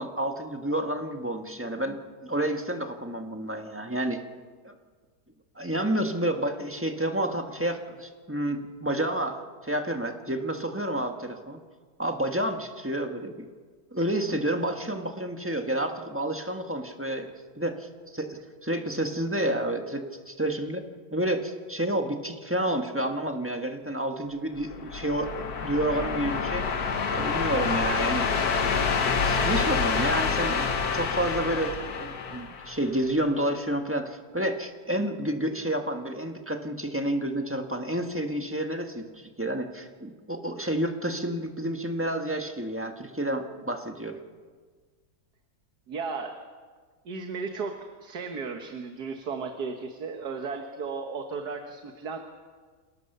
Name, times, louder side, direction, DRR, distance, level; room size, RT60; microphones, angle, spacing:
voice 1, 0.0-4.2 4.6-4.7 5.5-11.6 12.0-13.4 13.9-17.3 17.5-26.7 27.1-28.3 29.2-30.7 30.9-44.2, right 1 dB, 10° right, 4 dB, 1.4 m, -30 dB
sound 1, 24.6-33.1, left 5 dB, 70° left, 1.8 m, -27 dB
voice 2, 45.9-46.4 47.1-52.2, right 4 dB, 75° right, 4 dB, 1.9 m, -35 dB
27.5 x 18.0 x 6.8 m, 1.5 s
omnidirectional pair, 1.7 m